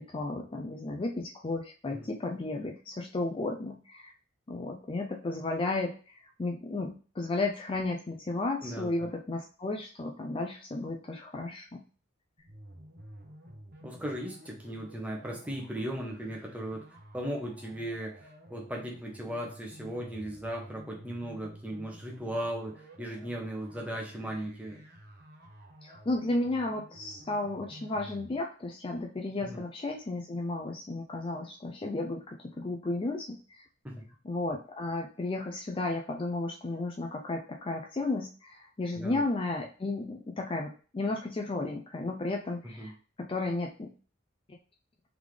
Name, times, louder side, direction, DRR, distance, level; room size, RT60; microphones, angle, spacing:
voice 1, 0.0-4.1 4.5-11.8 25.8-33.6 34.2-43.9, left 2 dB, 30° left, 1 dB, 0.4 m, -33 dB
voice 2, 8.6-9.1 13.8-16.8 17.1-24.8 29.4-29.6 33.8-34.1 38.9-39.2 42.8-42.9, right 1 dB, 10° right, -1 dB, 1.0 m, -37 dB
sound 1, 12.4-28.4, equal, 55° right, 0.9 m, -51 dB
3.6 x 3.5 x 3.2 m, 0.38 s
head